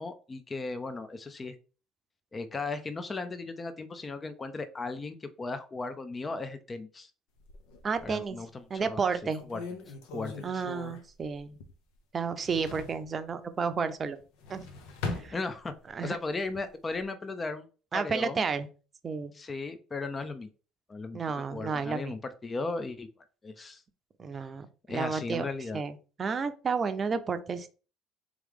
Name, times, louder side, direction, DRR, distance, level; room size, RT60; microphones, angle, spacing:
voice 1, 0.0-1.5 2.3-7.1 8.0-9.0 9.5-9.6 9.9-10.7 15.3-15.7 16.0-17.7 17.9-18.4 19.3-20.5 20.9-21.2 21.5-23.1 23.4-23.8 24.9-25.8, left 3 dB, 30° left, 10 dB, 0.5 m, -36 dB
sound 1, 7.4-8.3 8.8-8.9 9.3-12.0 12.2-13.1 14.2-16.0 16.4-17.0, left 3 dB, 80° left, 0.7 m, -41 dB
voice 2, 7.8-8.4 8.7-9.4 10.4-11.6 12.1-14.2 14.5-14.6 15.1-15.3 15.9-16.2 17.9-18.7 19.0-19.4 21.1-22.1 24.2-25.4 25.7-27.7, right 5 dB, 35° right, 10 dB, 0.6 m, -31 dB
3.6 x 3.1 x 3.5 m, 0.36 s
supercardioid pair, 80°, 0 cm